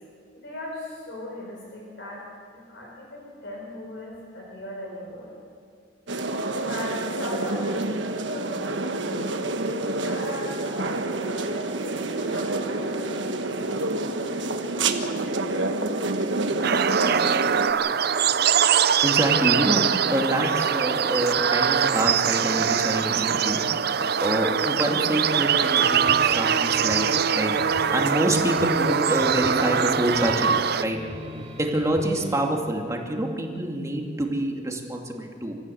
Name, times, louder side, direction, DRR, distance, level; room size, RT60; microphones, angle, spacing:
voice 1, 0.3-2.3 2.5-5.3 6.3-9.4 10.0-13.3, left 1 dB, 70° left, -1 dB, 4.3 m, -38 dB
sound 1, 6.1-17.7, right 2 dB, 75° right, 1.4 m, -28 dB
sound 2, 16.6-30.8, right 7 dB, 55° right, 0.6 m, -23 dB
voice 2, 19.0-23.6 24.2-31.1 31.6-35.6, right 1 dB, 15° right, 1 dB, 2.5 m, -26 dB
sound 3, 25.7-32.5, equal, 35° right, 2.5 m, -40 dB
25.5 x 14.0 x 7.9 m, 2.2 s
head